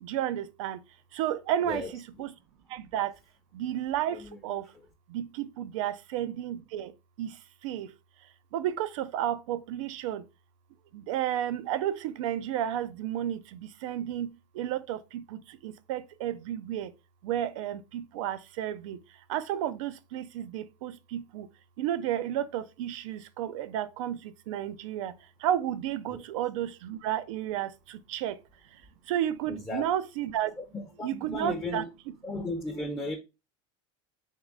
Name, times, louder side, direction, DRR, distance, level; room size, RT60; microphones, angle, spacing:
voice 1, 0.0-0.8 1.1-1.8 2.2-2.3 2.7-3.1 3.5-4.2 4.4-4.6 5.1-6.9 7.2-7.3 7.6-7.9 8.5-10.2 10.9-14.3 14.6-16.9 17.2-19.0 19.3-21.5 21.8-24.2 24.5-25.1 25.4-28.3 29.1-30.5 31.0-31.8, right 11 dB, 80° right, 0.5 m, -32 dB
voice 2, 1.6-2.2 4.1-4.4 26.1-26.2 29.5-29.8 30.6-31.9 32.2-33.2, left 2 dB, 15° left, 0.6 m, -36 dB
3.6 x 3.1 x 3.5 m
supercardioid pair, 120°, 16 cm